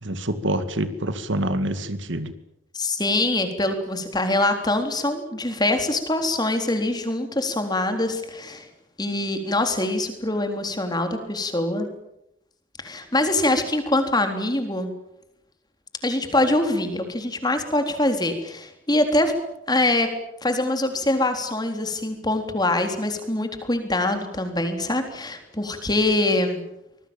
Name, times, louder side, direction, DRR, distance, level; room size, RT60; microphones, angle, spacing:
voice 1, 0.0-2.3, right 1 dB, 60° right, 10 dB, 2.1 m, -26 dB
voice 2, 2.7-8.7 9.0-11.9 12.8-14.9 16.0-19.3 19.7-20.1 20.4-26.6, left 2 dB, 20° left, 6 dB, 3.8 m, -24 dB
25.5 x 21.5 x 9.0 m, 0.84 s
head